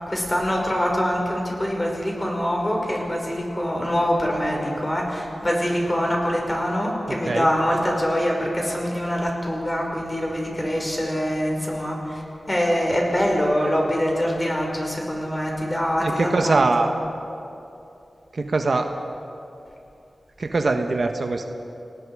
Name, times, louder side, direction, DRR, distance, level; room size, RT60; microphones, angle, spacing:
voice 1, 0.0-16.9, equal, 20° left, -1 dB, 5.3 m, -24 dB
voice 2, 16.0-16.9 18.3-18.9 20.4-21.5, right 3 dB, 60° right, 5 dB, 1.3 m, -22 dB
29.0 x 19.5 x 4.9 m, 2.7 s
wide cardioid pair, 80°, 0 cm